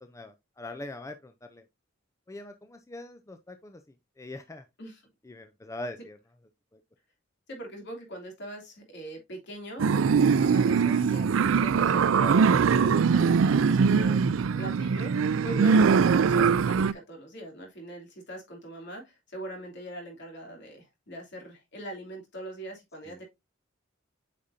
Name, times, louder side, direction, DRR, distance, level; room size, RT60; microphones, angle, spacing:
voice 1, 0.0-1.6 2.3-3.8 4.2-4.6 5.3-6.2, left 2 dB, 15° left, 0.5 m, -42 dB
voice 2, 7.5-11.3 11.6-23.2, right 1 dB, 60° left, 3.0 m, -42 dB
sound 1, 9.8-16.9, right 5 dB, 90° right, 0.4 m, -22 dB
8.6 x 5.2 x 2.7 m
head